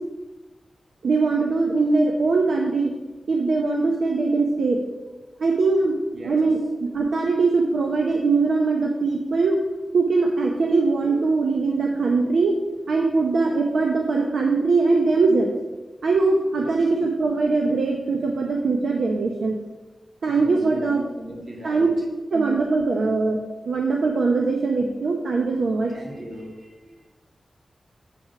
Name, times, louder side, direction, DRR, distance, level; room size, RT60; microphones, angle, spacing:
voice 1, 1.0-2.9 3.3-4.8 5.4-5.9 6.2-9.6 9.9-12.6 12.9-15.5 16.0-19.6 20.2-21.0 21.6-21.9 22.3-25.9, right 3 dB, 75° right, 1 dB, 0.8 m, -21 dB
voice 2, 20.2-21.9 25.9-27.1, equal, 55° right, -1 dB, 2.1 m, -39 dB
7.2 x 5.8 x 5.9 m, 1.2 s
wide cardioid pair, 165°, 0 cm